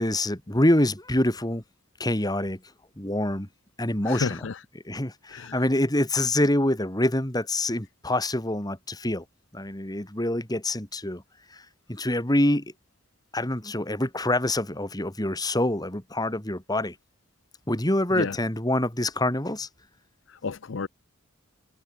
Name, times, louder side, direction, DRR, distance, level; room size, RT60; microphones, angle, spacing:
voice 1, 0.0-1.6 2.0-2.6 3.0-3.5 3.8-4.4 4.8-9.2 9.5-11.2 11.9-12.7 13.3-16.9 17.7-19.7, left 1 dB, 20° left, 2.8 m, -26 dB
voice 2, 4.0-4.6 5.3-5.6 18.1-18.4 20.3-20.9, left 4 dB, 60° left, 0.6 m, -31 dB
head